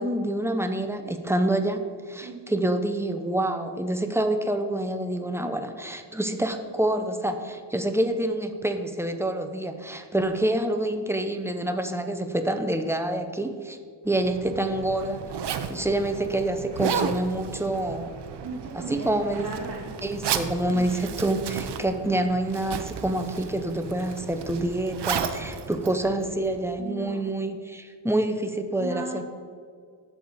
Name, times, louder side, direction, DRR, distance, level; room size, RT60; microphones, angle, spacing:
voice 1, 0.0-1.8 2.1-13.8 14.0-15.2 15.7-18.1 18.7-19.5 20.0-29.2, right 1 dB, 5° right, 6 dB, 0.6 m, -27 dB
Zipper (clothing), 14.1-26.8, right 7 dB, 65° right, 0.7 m, -34 dB
voice 2, 18.4-19.1 19.4-20.0 20.7-20.9 26.8-27.3 28.7-29.2, right 4 dB, 35° right, -2 dB, 1.1 m, -36 dB
13.5 x 4.8 x 4.1 m, 2.1 s
wide cardioid pair, 110°, 44 cm